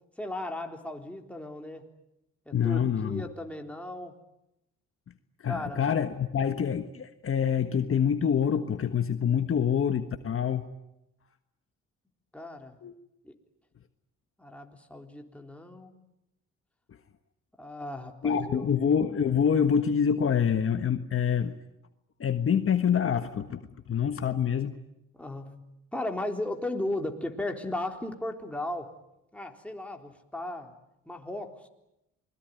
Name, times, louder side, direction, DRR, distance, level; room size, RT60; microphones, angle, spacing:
voice 1, 0.2-1.9 2.5-4.2 5.5-5.8 12.3-12.8 13.2-13.3 14.4-16.0 17.6-18.7 25.2-25.7 25.9-28.9 29.3-30.7 31.1-31.7, left 1 dB, 5° left, 2 dB, 3.8 m, -36 dB
voice 2, 2.5-3.2 5.4-10.6 12.8-12.9 18.2-21.5 22.2-24.8, left 7 dB, 45° left, 8 dB, 1.5 m, -26 dB
28.0 x 21.5 x 9.3 m, 0.87 s
cardioid pair, 90°, 30 cm